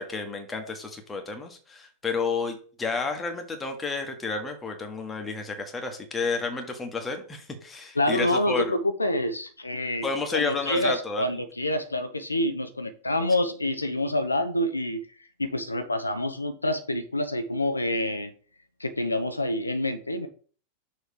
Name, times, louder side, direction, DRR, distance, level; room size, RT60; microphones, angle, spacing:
voice 1, 0.0-8.6 10.0-11.3, left 4 dB, 15° left, 4 dB, 1.3 m, -31 dB
voice 2, 8.0-15.0 15.4-18.3 18.8-20.3, left 1 dB, 80° left, 9 dB, 0.5 m, -27 dB
6.4 x 3.1 x 4.9 m, 0.42 s
figure-of-eight pair, 90°, 0 cm